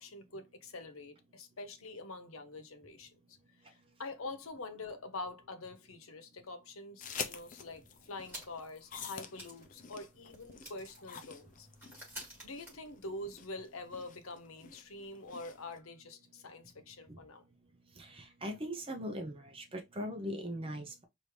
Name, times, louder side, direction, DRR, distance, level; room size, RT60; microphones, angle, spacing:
voice 1, 0.0-3.1 3.6-11.7 12.0-12.1 12.4-17.4, left 2 dB, 85° left, 0.9 m, -46 dB
sound 1, 7.0-15.8, left 7 dB, 35° left, 0.5 m, -47 dB
sound 2, 8.2-8.8 9.0-9.1 9.3-13.5, right 1 dB, 10° right, 3.2 m, -51 dB
voice 2, 18.0-21.0, equal, 25° right, 0.7 m, -40 dB
4.9 x 2.7 x 3.2 m
head